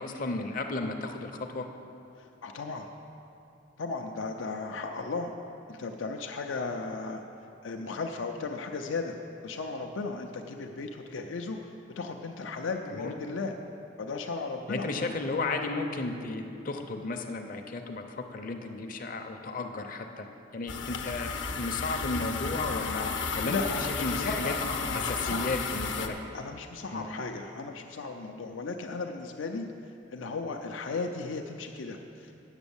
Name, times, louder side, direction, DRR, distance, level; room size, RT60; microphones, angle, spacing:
voice 1, 0.0-1.7 12.9-13.1 14.7-20.3 20.5-23.1 23.3-23.5 24.0-24.5 24.9-26.2 26.9-27.1, left 3 dB, 45° left, 4 dB, 0.6 m, -34 dB
voice 2, 2.2-2.9 3.8-5.3 5.7-7.2 7.6-9.1 9.4-13.5 14.0-15.1 20.7-20.8 23.4-25.5 26.3-29.7 30.1-32.3, left 3 dB, 90° left, 4 dB, 0.6 m, -35 dB
sound 1, 20.7-26.1, left 5 dB, 70° left, 0.9 m, -33 dB
9.0 x 7.1 x 7.1 m, 2.7 s
head